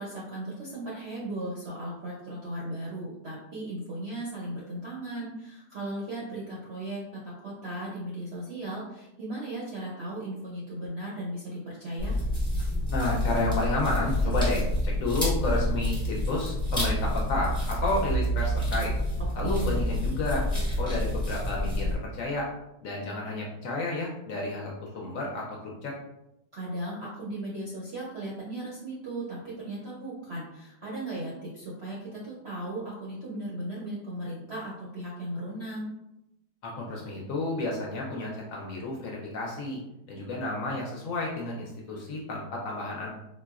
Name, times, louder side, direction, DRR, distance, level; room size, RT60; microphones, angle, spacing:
voice 1, 0.0-12.2 19.4-19.8 26.5-35.9, right 1 dB, 65° right, -6 dB, 0.6 m, -36 dB
sound 1, 12.0-21.9, equal, 5° left, 0.5 m, -28 dB
voice 2, 12.9-18.9 19.3-22.5 22.8-25.9 36.6-39.8 40.1-43.1, left 2 dB, 70° left, -2 dB, 0.8 m, -31 dB
3.9 x 2.1 x 2.3 m, 0.89 s
omnidirectional pair, 1.7 m